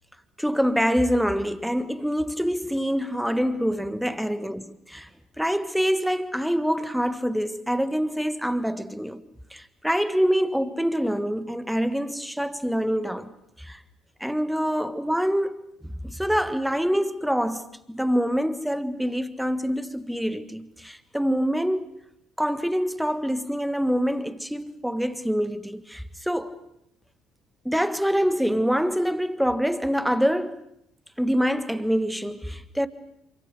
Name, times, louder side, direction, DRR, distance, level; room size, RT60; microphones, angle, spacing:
voice 1, 0.4-5.1 5.4-9.2 9.5-13.3 13.6-13.8 14.2-15.6 15.8-21.9 22.4-26.6 27.6-30.6 31.2-32.9, equal, ahead, 1.6 m, -25 dB
27.0 x 25.0 x 6.5 m
figure-of-eight pair, 50°, 0 cm